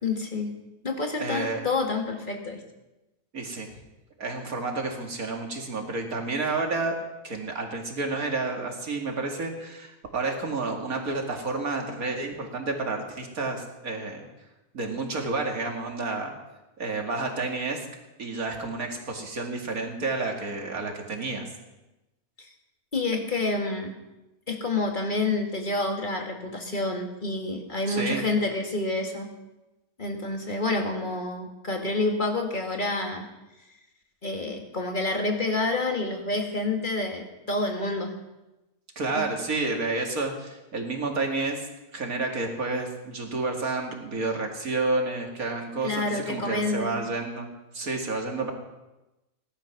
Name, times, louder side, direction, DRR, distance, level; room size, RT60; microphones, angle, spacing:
voice 1, 0.0-0.5 0.8-2.6 22.4-22.5 22.9-23.9 24.5-29.3 30.0-33.2 34.2-38.1 39.1-39.3 45.8-47.0, left 2 dB, 35° left, 2 dB, 2.2 m, -28 dB
voice 2, 1.2-1.6 3.3-3.7 4.2-7.0 7.2-14.2 14.7-16.3 16.8-17.9 18.2-21.5 27.9-28.2 39.0-41.7 41.9-47.5 47.7-48.5, right 3 dB, 85° right, 2 dB, 2.7 m, -30 dB
18.5 x 11.5 x 6.1 m, 1.0 s
omnidirectional pair, 1.5 m